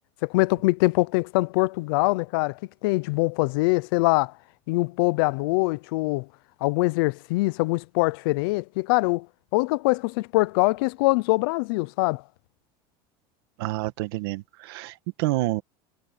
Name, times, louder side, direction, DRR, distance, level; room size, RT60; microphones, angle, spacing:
voice 1, 0.2-4.3 4.7-6.3 6.6-9.3 9.5-12.2, left 23 dB, 65° left, 0.5 m, -23 dB
voice 2, 13.6-15.6, right 19 dB, 70° right, 1.5 m, -28 dB
cardioid pair, 180°, 13 cm